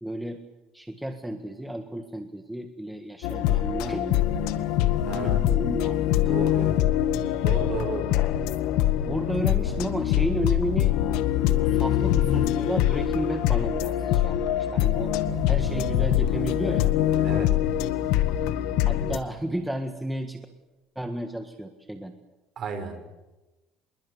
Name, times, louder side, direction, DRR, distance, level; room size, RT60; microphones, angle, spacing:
voice 1, 0.0-0.4 0.7-4.5 5.1-6.7 7.2-7.4 9.0-11.0 11.5-15.1 15.5-16.9 18.9-20.4 20.9-22.1, right 1 dB, 5° right, 5 dB, 1.7 m, -33 dB
sound 1, 3.2-19.2, left 11 dB, 75° left, 1.7 m, -24 dB
voice 2, 5.1-5.4 6.3-6.7 7.4-8.1 17.2-17.5 22.6-23.0, right 5 dB, 40° right, 8 dB, 5.2 m, -33 dB
sound 2, 15.3-17.4, right 8 dB, 60° right, 4.2 m, -39 dB
26.5 x 22.0 x 8.2 m, 1.1 s
cardioid pair, 145°, 0 cm